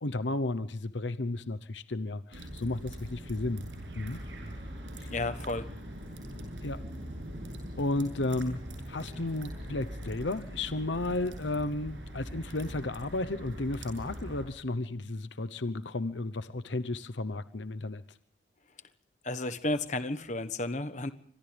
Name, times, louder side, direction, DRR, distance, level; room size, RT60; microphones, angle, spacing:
voice 1, 0.0-3.7 3.9-4.2 5.0-5.1 6.6-6.8 7.8-8.6 8.9-18.0, left 2 dB, 80° left, 13 dB, 0.9 m, -33 dB
sound 1, 2.3-14.5, equal, 75° right, 7.8 m, -42 dB
voice 2, 5.1-5.7 19.2-21.1, left 2 dB, 40° left, 10 dB, 1.3 m, -32 dB
30.0 x 25.0 x 3.4 m, 0.64 s
head